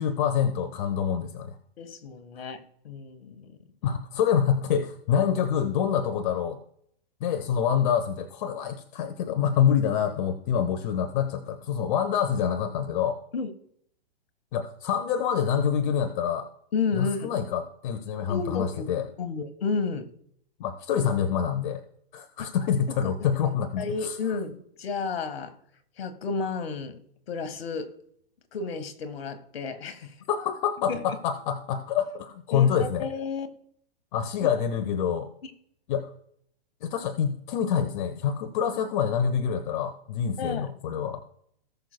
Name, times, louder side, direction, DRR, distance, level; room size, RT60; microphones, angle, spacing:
voice 1, 0.0-1.6 3.8-6.6 7.2-13.2 14.5-16.5 16.9-19.1 20.6-21.8 22.1-24.2 30.3-33.1 34.1-35.3 35.9-36.1 36.8-41.2, left 8 dB, 50° left, 8 dB, 1.0 m, -26 dB
voice 2, 1.8-3.6 13.3-13.5 16.7-17.3 18.3-18.9 19.2-20.1 22.4-22.5 22.9-23.1 23.8-25.5 26.0-27.0 27.3-27.9 28.5-30.2 30.9-31.0 32.5-33.5 34.4-34.5 35.4-35.5 40.4-40.7, left 4 dB, 75° left, 9 dB, 1.6 m, -32 dB
18.5 x 6.5 x 2.2 m, 0.66 s
hypercardioid pair, 125°, 30 cm